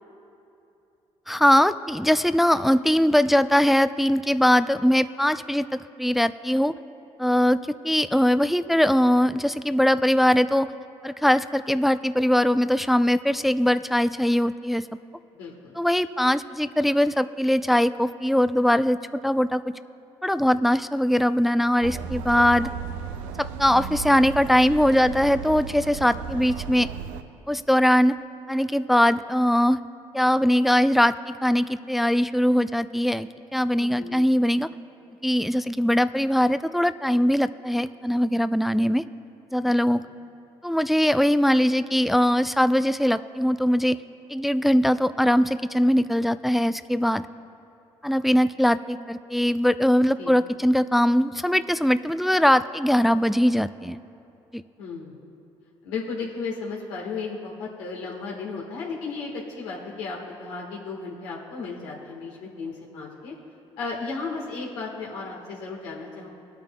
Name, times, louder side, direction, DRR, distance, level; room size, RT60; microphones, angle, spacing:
voice 1, 1.3-6.7 7.2-10.7 11.0-14.8 15.8-19.6 20.2-22.7 23.4-26.9 27.5-28.2 28.5-29.8 30.1-31.2 31.4-34.7 35.2-39.0 39.5-40.0 40.6-44.0 44.3-47.3 48.0-54.0, equal, ahead, 13 dB, 0.3 m, -21 dB
voice 2, 15.3-15.8 33.8-34.3 39.7-40.0 50.2-50.3 54.8-55.2 55.8-63.3 63.8-66.3, left 4 dB, 90° left, -3 dB, 1.4 m, -34 dB
sound 1, 21.8-27.2, right 7 dB, 85° right, 0.5 m, -35 dB
22.5 x 9.0 x 2.2 m, 2.9 s
supercardioid pair, 55°, 13 cm